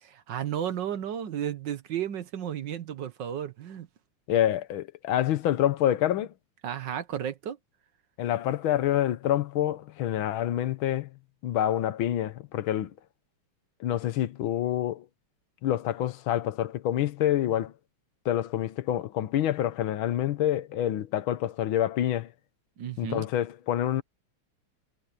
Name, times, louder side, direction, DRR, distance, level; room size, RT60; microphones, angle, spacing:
voice 1, 0.0-3.9 6.6-7.6 22.8-23.2, right 9 dB, 60° right, 1.5 m, -33 dB
voice 2, 4.3-6.3 8.2-11.1 11.4-12.9 13.8-15.1 15.6-17.7 18.3-22.3 23.0-24.0, left 12 dB, 70° left, 1.7 m, -27 dB
omnidirectional pair, 2.4 m